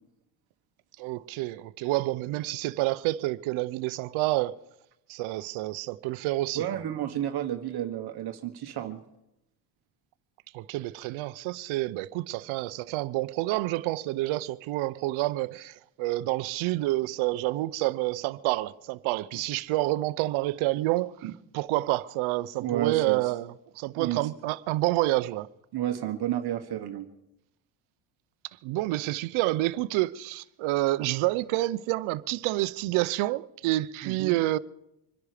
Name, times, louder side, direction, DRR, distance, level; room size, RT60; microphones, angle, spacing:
voice 1, 1.0-4.5 5.1-6.6 10.5-21.3 21.5-25.5 28.6-34.6, right 18 dB, 75° right, 0.8 m, -28 dB
voice 2, 6.5-9.0 21.2-21.3 22.6-23.3 24.0-24.2 25.7-27.1 34.0-34.4, right 12 dB, 50° right, 1.4 m, -31 dB
25.5 x 10.5 x 5.0 m
cardioid pair, 110°, 49 cm